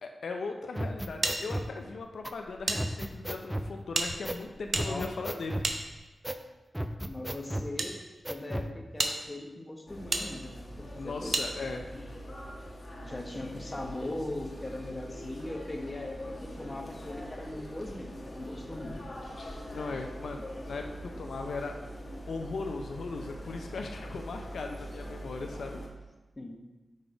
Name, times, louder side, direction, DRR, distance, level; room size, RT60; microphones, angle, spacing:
voice 1, 0.0-5.6 11.0-11.8 19.7-21.7 22.3-25.8, left 3 dB, 85° left, 3 dB, 0.4 m, -38 dB
sound 1, 0.7-1.7 2.2-2.3 2.7-3.7 4.2-4.4 4.7-5.7 6.2-6.4 6.7-7.7 8.2-8.7, equal, 10° right, 0.4 m, -34 dB
sound 2, 1.2-2.8 3.1-3.2 3.9-6.4 7.2-7.9 8.5-8.6 9.0-9.2 10.1-10.3 11.3-11.5, right 3 dB, 65° right, 0.6 m, -33 dB
voice 2, 7.1-8.0 8.3-11.4 13.0-19.0 26.4-26.6, left 1 dB, 30° left, 2 dB, 0.8 m, -40 dB
sound 3, 9.9-25.9, equal, 45° left, 1.1 m, -43 dB
5.3 x 3.9 x 4.7 m, 1.1 s
cardioid pair, 65°, 0 cm